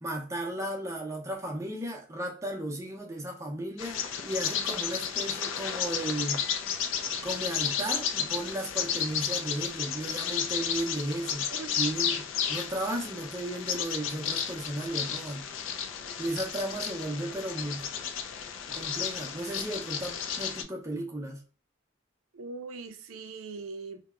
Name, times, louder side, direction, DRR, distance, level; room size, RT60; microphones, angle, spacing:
voice 1, 0.0-6.4 7.2-11.5 11.8-15.4 16.2-17.9 18.7-21.4, right 1 dB, 15° right, 0.5 m, -35 dB
Bird vocalization bird call bird song, 3.8-20.6, left 8 dB, 70° left, 0.3 m, -33 dB
voice 2, 22.3-24.1, right 4 dB, 85° right, 0.4 m, -41 dB
2.7 x 2.1 x 2.3 m
head